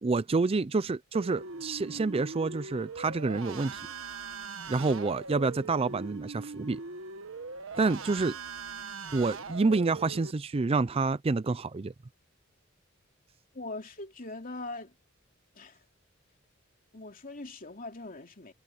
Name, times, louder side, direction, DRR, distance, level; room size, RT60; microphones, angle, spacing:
voice 1, 0.0-3.8 4.1-4.2 4.7-6.8 7.8-8.4 9.1-11.9, right 3 dB, 30° right, 0.4 m, -28 dB
sound 1, 1.1-10.3, right 4 dB, 75° right, 1.5 m, -41 dB
voice 2, 13.5-14.9 15.5-15.8 16.9-18.5, left 2 dB, 45° left, 3.1 m, -41 dB
head